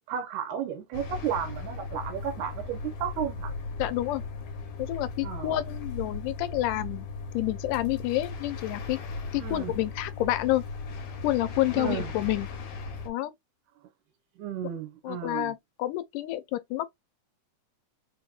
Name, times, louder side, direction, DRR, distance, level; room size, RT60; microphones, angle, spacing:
voice 1, 0.1-3.5 5.2-5.5 9.4-9.7 11.8-12.1 14.4-15.5, right 9 dB, 80° right, 2.2 m, -33 dB
sound 1, 0.9-13.1, left 4 dB, 70° left, 2.1 m, -37 dB
voice 2, 3.8-4.2 4.8-7.1 7.3-9.0 9.3-10.6 11.2-12.5 13.1-13.3 15.0-16.9, left 15 dB, 85° left, 2.1 m, -29 dB
5.1 x 2.8 x 2.3 m
omnidirectional pair, 3.7 m